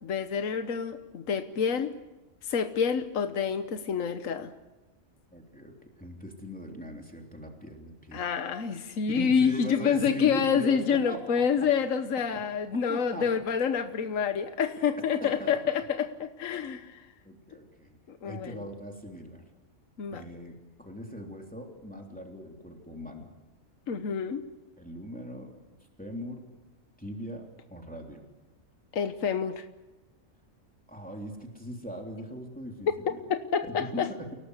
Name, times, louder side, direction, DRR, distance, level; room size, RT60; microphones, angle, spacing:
voice 1, 0.0-1.9 2.4-4.5 8.1-17.0 18.1-18.6 20.0-20.2 23.9-24.4 28.9-29.7 33.3-34.1, left 6 dB, 75° left, 8 dB, 1.5 m, -28 dB
voice 2, 5.3-8.2 9.1-11.7 12.3-12.5 12.9-13.3 15.2-15.5 17.2-18.0 18.2-19.4 20.1-23.3 24.8-25.5 26.0-26.4 27.0-28.2 30.9-33.2 33.6-34.3, equal, 5° left, 1 dB, 3.3 m, -40 dB
29.5 x 18.5 x 8.1 m, 1.1 s
omnidirectional pair, 1.4 m